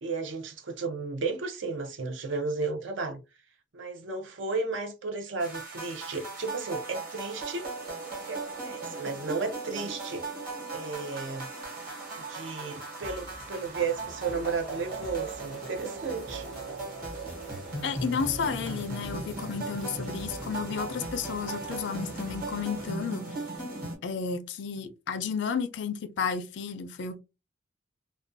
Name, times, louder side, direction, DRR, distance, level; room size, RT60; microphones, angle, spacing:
voice 1, 0.0-3.2 3.7-7.7 8.3-10.3 10.7-11.5 12.2-16.5, right 4 dB, 70° right, 0.5 m, -33 dB
sound 1, 5.4-24.0, right 3 dB, 50° right, 1.2 m, -38 dB
sound 2, 13.0-23.0, equal, ahead, 0.5 m, -47 dB
voice 2, 17.8-23.3 24.0-27.2, left 6 dB, 60° left, 0.4 m, -32 dB
2.4 x 2.2 x 2.5 m
head